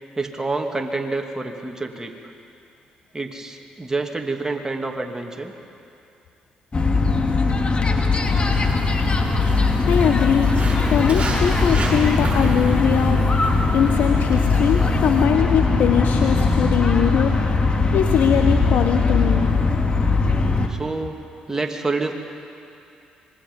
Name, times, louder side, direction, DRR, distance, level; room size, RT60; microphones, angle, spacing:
voice 1, 0.2-2.1 3.1-5.5 20.7-21.2 21.5-22.1, right 3 dB, 20° right, 3 dB, 2.6 m, -27 dB
sound 1, 6.7-20.7, left 3 dB, 35° left, 2.1 m, -20 dB
Walk footsteps, 8.2-15.2, right 3 dB, 40° right, 7.0 m, -30 dB
voice 2, 9.8-10.6 10.9-17.3 17.9-19.5, left 8 dB, 65° left, 4 dB, 1.1 m, -21 dB
25.5 x 21.0 x 5.5 m, 2.6 s
hypercardioid pair, 50°, 3 cm